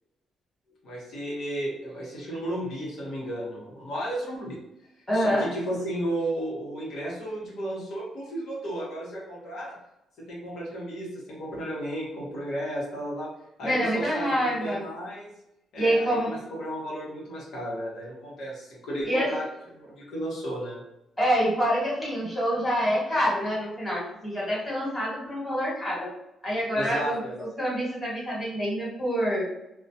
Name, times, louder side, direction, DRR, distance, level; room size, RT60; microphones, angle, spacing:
voice 1, 0.8-4.6 5.1-9.8 10.2-13.3 13.6-15.3 15.7-19.5 19.7-20.8 26.7-27.4, right 1 dB, 75° left, -5 dB, 0.9 m, -33 dB
voice 2, 5.1-5.5 13.6-14.8 15.8-16.3 19.0-19.3 21.2-26.1 26.4-29.5, equal, 10° left, -6 dB, 1.3 m, -26 dB
2.2 x 2.1 x 2.6 m, 0.86 s
cardioid pair, 90°, 0 cm